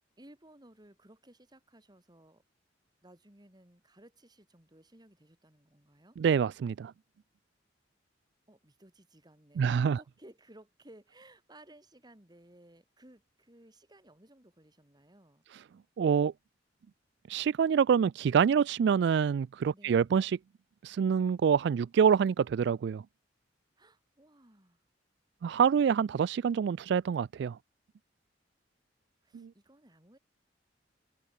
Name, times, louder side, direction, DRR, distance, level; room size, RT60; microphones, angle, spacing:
voice 1, 0.2-2.4 3.0-6.2 8.5-15.4 19.7-20.1 23.8-24.8 29.2-30.2, right 1 dB, 20° right, 3.3 m, -58 dB
voice 2, 6.2-6.9 9.6-10.0 16.0-16.3 17.3-20.4 20.8-23.0 25.4-27.6 29.3-29.5, right 7 dB, 65° right, 0.3 m, -26 dB
head